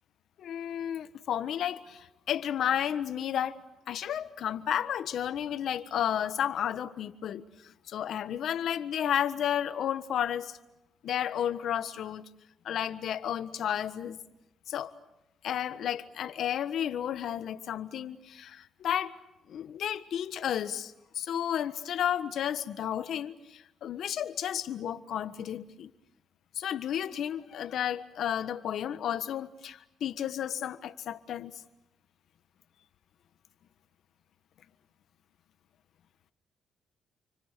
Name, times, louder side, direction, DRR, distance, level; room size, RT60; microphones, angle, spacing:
voice 1, 0.4-3.6 3.9-10.6 11.0-12.2 12.6-14.2 14.7-14.9 15.4-19.1 19.5-25.9 26.5-31.6, left 10 dB, 70° left, 1.4 m, -32 dB
30.0 x 25.0 x 6.8 m
cardioid pair, 90°, 0 cm